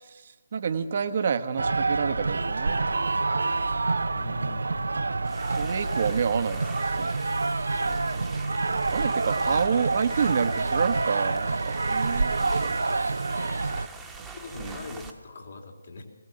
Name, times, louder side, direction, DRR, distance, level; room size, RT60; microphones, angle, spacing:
voice 1, 0.0-3.0 5.5-6.6 7.0-7.2 7.8-8.0 8.9-12.7 14.2-14.3 14.6-14.8, right 6 dB, 40° right, 7 dB, 1.1 m, -28 dB
sound 1, 1.6-13.9, right 3 dB, 65° right, 0.8 m, -27 dB
voice 2, 4.1-4.9 14.3-16.0, left 3 dB, 55° left, 2 dB, 3.4 m, -40 dB
sound 2, 5.2-15.1, right 4 dB, 5° right, 1.4 m, -44 dB
21.0 x 17.0 x 7.5 m, 1.3 s
figure-of-eight pair, 150°, 0 cm